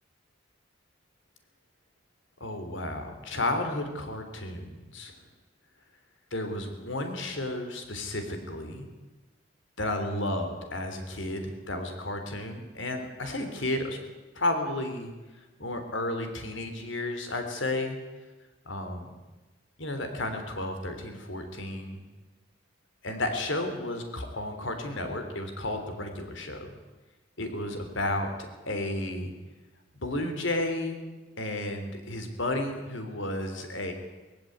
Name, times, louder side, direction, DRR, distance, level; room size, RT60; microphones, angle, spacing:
voice 1, 2.4-5.1 6.3-8.9 9.8-14.0 14.4-15.1 15.6-18.0 18.7-19.1 19.8-22.0 23.0-26.7 27.4-28.3 28.7-29.3 30.0-31.0 31.4-33.9, left 1 dB, 70° left, 6 dB, 3.4 m, -32 dB
19.0 x 15.5 x 9.4 m, 1.2 s
head